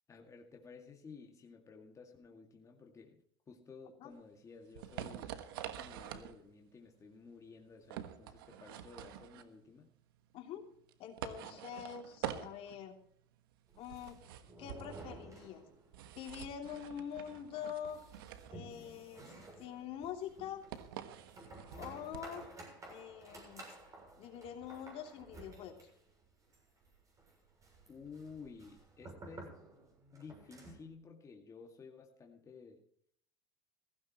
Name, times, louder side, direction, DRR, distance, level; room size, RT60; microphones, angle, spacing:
voice 1, 0.1-5.3 5.8-9.9 11.4-11.6 27.9-29.6 30.1-32.8, left 5 dB, 25° left, 2 dB, 2.1 m, -54 dB
sound 1, 4.1-22.5, right 10 dB, 85° right, 1.3 m, -47 dB
voice 2, 10.3-10.7 11.0-13.0 13.8-14.2 14.6-15.6 16.1-18.0 18.5-20.6 21.7-22.5 22.9-23.6 24.2-25.8, left 9 dB, 55° left, 4 dB, 3.0 m, -45 dB
sound 2, 13.7-16.1 16.3-16.4 16.8-16.9 17.3-30.9, right 2 dB, 30° right, 6.7 m, -54 dB
16.0 x 15.5 x 3.0 m, 0.62 s
supercardioid pair, 100°, 12 cm